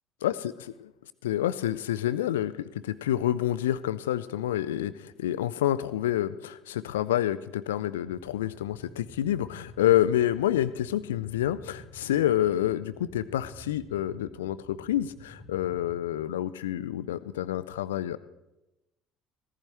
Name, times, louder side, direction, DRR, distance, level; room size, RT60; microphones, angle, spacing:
voice 1, 0.2-0.5 1.2-18.2, left 12 dB, 70° left, 16 dB, 0.4 m, -28 dB
sound 1, 8.0-15.9, right 1 dB, 55° right, 3.4 m, -50 dB
15.5 x 14.5 x 3.3 m, 0.95 s
figure-of-eight pair, 60°, 0 cm